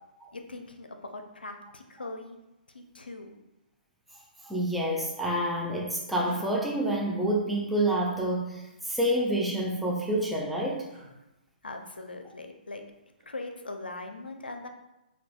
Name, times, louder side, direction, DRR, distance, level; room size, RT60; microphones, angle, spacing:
voice 1, 0.3-2.4 2.7-3.3 11.6-12.8 13.3-14.7, left 2 dB, 85° left, 5 dB, 0.5 m, -40 dB
voice 2, 4.4-10.9, right 1 dB, ahead, -2 dB, 0.4 m, -28 dB
sound 1, 6.2-6.4 9.0-9.2 10.9-11.1 12.9-13.3, right 1 dB, 45° right, 1.3 m, -50 dB
5.3 x 2.3 x 2.3 m, 0.94 s
figure-of-eight pair, 130°, 5 cm